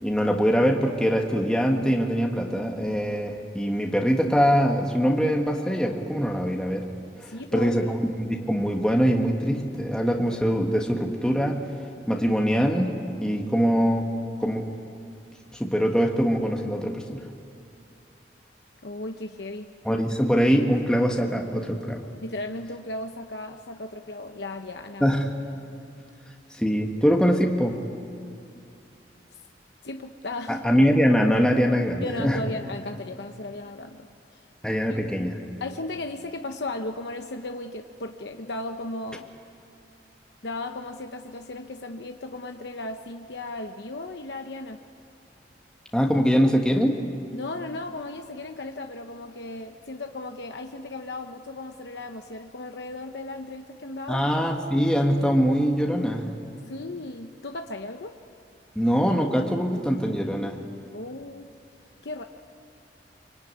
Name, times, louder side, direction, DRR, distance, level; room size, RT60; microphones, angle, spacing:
voice 1, 0.0-6.9 7.2-11.6 12.1-14.1 14.4-14.7 15.5-17.2 19.8-22.0 25.0-25.3 26.5-27.8 30.5-32.4 34.6-35.4 45.9-47.0 54.1-56.2 58.7-60.6, equal, 5° left, 0 dB, 1.4 m, -23 dB
voice 2, 7.2-8.0 18.8-19.7 22.2-25.1 29.8-30.6 32.0-34.1 34.3-34.4 35.6-39.3 40.4-44.8 47.3-54.2 56.7-58.2 60.9-61.5 62.0-62.2, left 2 dB, 75° left, 5 dB, 1.0 m, -36 dB
24.5 x 24.5 x 9.6 m, 2.5 s
head